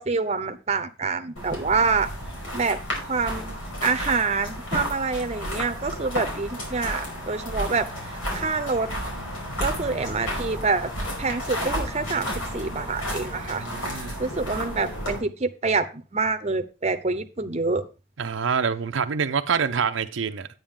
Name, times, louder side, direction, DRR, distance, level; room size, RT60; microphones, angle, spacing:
voice 1, 0.0-2.1 2.5-2.8 3.1-8.9 9.6-10.9 11.2-17.8, right 4 dB, 35° right, 0.7 m, -26 dB
sound 1, 1.4-15.2, equal, 85° left, 5.1 m, -32 dB
voice 2, 13.5-14.2 18.2-20.5, right 6 dB, 70° right, 0.6 m, -26 dB
9.5 x 8.8 x 3.7 m
head